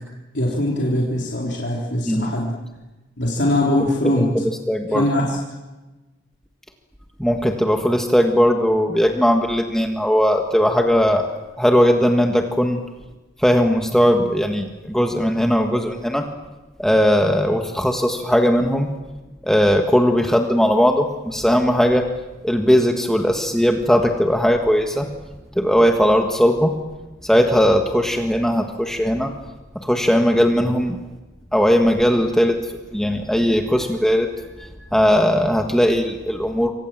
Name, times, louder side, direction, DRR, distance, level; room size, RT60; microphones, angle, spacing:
voice 1, 0.3-2.5 3.2-4.3 4.9-5.4, left 1 dB, 60° left, -2 dB, 3.9 m, -21 dB
voice 2, 4.7-5.0 7.2-11.3 11.6-12.8 13.4-16.3 16.8-18.9 19.4-22.1 22.4-25.1 25.5-26.8 27.2-29.3 29.7-31.0 31.5-32.6 32.9-34.3 34.6-36.7, equal, 5° left, 3 dB, 1.5 m, -18 dB
28.0 x 24.5 x 7.5 m, 1.1 s
head